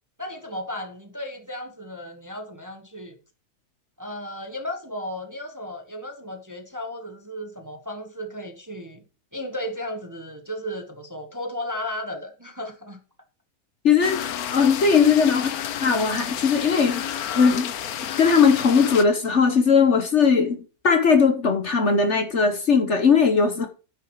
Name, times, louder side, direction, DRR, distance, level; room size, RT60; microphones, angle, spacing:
voice 1, 0.2-3.2 4.0-9.0 9.3-13.0, left 1 dB, 10° right, 1.2 m, -34 dB
voice 2, 13.8-14.2 14.5-15.5 15.8-17.0 17.3-17.7 18.2-20.6 20.8-23.7, left 5 dB, 50° left, 1.4 m, -19 dB
sound 1, 14.0-19.0, left 10 dB, 65° left, 1.3 m, -31 dB
9.7 x 6.5 x 6.3 m
omnidirectional pair, 1.7 m